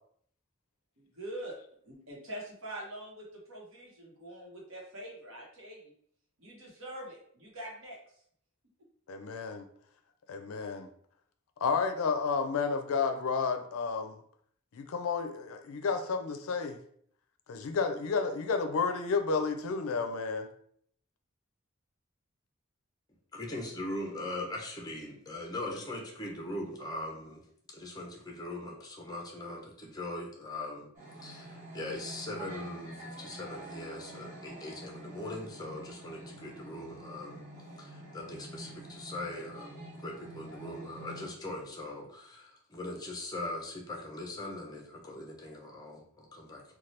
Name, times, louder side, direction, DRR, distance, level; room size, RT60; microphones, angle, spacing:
voice 1, 1.0-1.6 1.8-5.9 6.4-8.0, right 1 dB, 70° right, -3 dB, 1.0 m, -44 dB
voice 2, 9.1-9.7 10.3-10.9 11.6-14.2 14.7-16.8 17.5-20.5, left 5 dB, 80° left, 7 dB, 0.4 m, -31 dB
voice 3, 23.3-37.4 37.8-46.6, left 1 dB, 20° left, -1 dB, 0.5 m, -41 dB
sound 1, 30.9-41.3, right 1 dB, 40° right, 0.9 m, -47 dB
2.8 x 2.2 x 3.1 m, 0.64 s
head